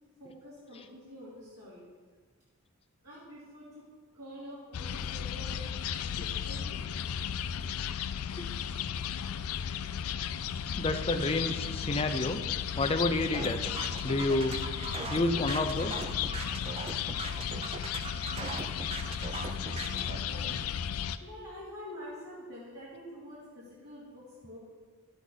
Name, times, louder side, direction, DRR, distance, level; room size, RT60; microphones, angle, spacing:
voice 1, 0.2-1.8 3.0-3.8 4.1-5.6 6.0-6.8 19.6-20.6 21.2-24.6, equal, 75° right, -10 dB, 3.2 m, -47 dB
sound 1, 4.7-21.2, left 8 dB, 80° left, 0.4 m, -35 dB
voice 2, 10.8-12.4 12.7-14.6 15.1-16.1, left 2 dB, 25° left, 6 dB, 0.5 m, -30 dB
sound 2, 13.3-20.2, right 3 dB, 25° right, 0.5 m, -40 dB
12.0 x 8.0 x 4.1 m, 1.5 s
head